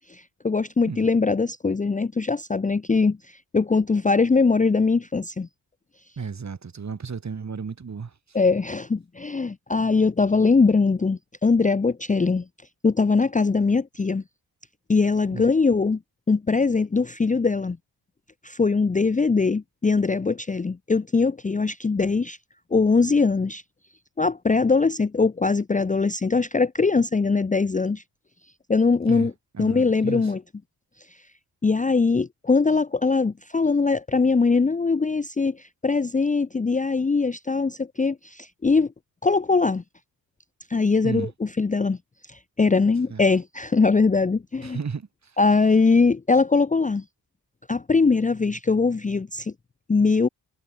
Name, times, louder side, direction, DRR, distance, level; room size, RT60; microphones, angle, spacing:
voice 1, 0.1-3.2 3.5-5.5 8.3-12.4 12.8-14.2 14.9-16.0 16.3-17.8 18.4-22.4 22.7-23.6 24.2-28.0 28.7-29.3 29.6-30.4 31.6-38.9 39.2-39.8 40.7-42.0 42.3-44.8 45.4-47.0 47.7-49.5 49.9-50.3, left 4 dB, 20° left, 0.6 m, -21 dB
voice 2, 6.2-8.4 15.3-15.5 29.1-30.3 41.0-41.3 43.1-43.2 44.6-45.4, right 5 dB, 40° right, 3.0 m, -34 dB
wide cardioid pair, 130°, 42 cm